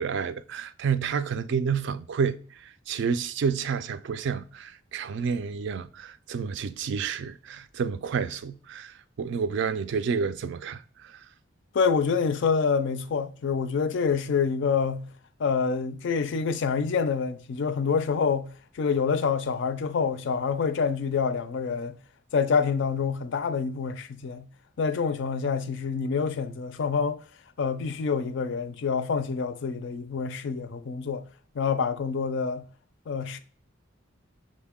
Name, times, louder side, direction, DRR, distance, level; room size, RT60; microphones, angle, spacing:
voice 1, 0.0-11.2, right 6 dB, 65° right, 0.3 m, -30 dB
voice 2, 11.7-15.1 15.4-22.0 22.3-24.5 24.8-27.2 27.6-31.2 31.5-32.7 33.1-33.4, left 5 dB, 65° left, 0.4 m, -27 dB
6.2 x 2.1 x 3.5 m
head